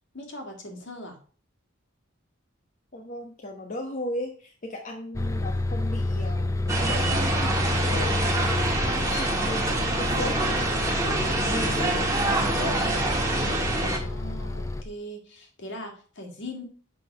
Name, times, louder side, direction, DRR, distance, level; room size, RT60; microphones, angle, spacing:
voice 1, 0.1-1.2 11.4-11.6 13.7-16.6, left 1 dB, 60° left, 2 dB, 2.1 m, -41 dB
voice 2, 2.9-8.3 9.0-10.4 11.4-13.2, left 1 dB, 40° left, 0 dB, 1.1 m, -37 dB
Bus, 5.1-14.8, left 2 dB, 15° left, 0.4 m, -30 dB
sound 1, 6.7-14.0, right 2 dB, 15° right, 1.6 m, -26 dB
7.8 x 5.7 x 5.5 m, 0.43 s
head